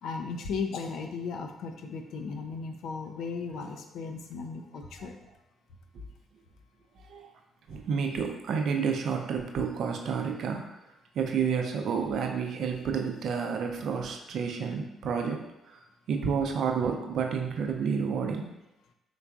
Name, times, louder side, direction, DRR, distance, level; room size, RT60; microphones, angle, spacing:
voice 1, 0.0-5.2, left 5 dB, 70° left, 5 dB, 0.4 m, -36 dB
voice 2, 7.0-7.3 7.7-15.8 16.1-18.5, right 6 dB, 65° right, 3 dB, 0.5 m, -30 dB
3.9 x 3.3 x 2.4 m, 0.91 s
hypercardioid pair, 55°, 0 cm